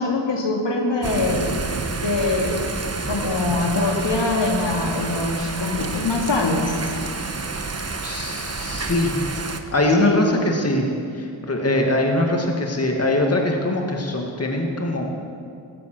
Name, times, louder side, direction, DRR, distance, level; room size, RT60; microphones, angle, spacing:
voice 1, 0.0-1.5 2.0-2.7 3.1-6.8 10.0-10.2, left 2 dB, 60° left, 1 dB, 2.5 m, -23 dB
Thunder / Rain, 1.0-9.6, right 3 dB, 30° right, 1.3 m, -29 dB
voice 2, 8.0-9.1 9.7-10.9 11.1-15.1, left 1 dB, 30° left, 1 dB, 2.1 m, -22 dB
16.5 x 12.5 x 6.7 m, 2.4 s
cardioid pair, 70°, 48 cm